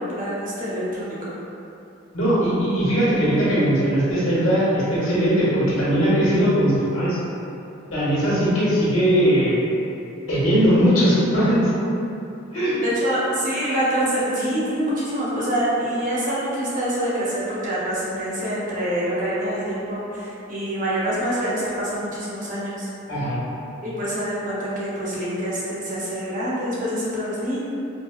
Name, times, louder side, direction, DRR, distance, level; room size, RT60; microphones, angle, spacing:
voice 1, 0.0-1.4 12.8-22.8 23.8-27.6, equal, 40° right, -8 dB, 0.8 m, -26 dB
voice 2, 2.1-7.2 7.9-9.6 10.3-11.7 12.5-12.8 23.1-23.4, equal, 80° left, -10 dB, 1.2 m, -19 dB
4.8 x 2.2 x 2.4 m, 2.7 s
head